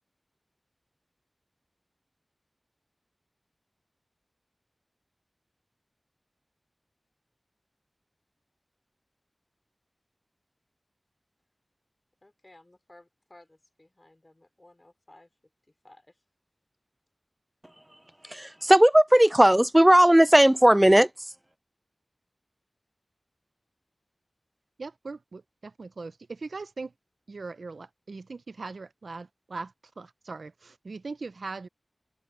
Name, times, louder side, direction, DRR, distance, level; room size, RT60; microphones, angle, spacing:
voice 1, 12.2-15.3 15.8-16.2, left 1 dB, 35° left, 2.9 m, -56 dB
voice 2, 18.3-21.1, right 1 dB, 15° right, 0.3 m, -17 dB
voice 3, 24.8-26.9 27.3-31.7, right 3 dB, 90° right, 0.5 m, -40 dB
open air
wide cardioid pair, 60°, 0 cm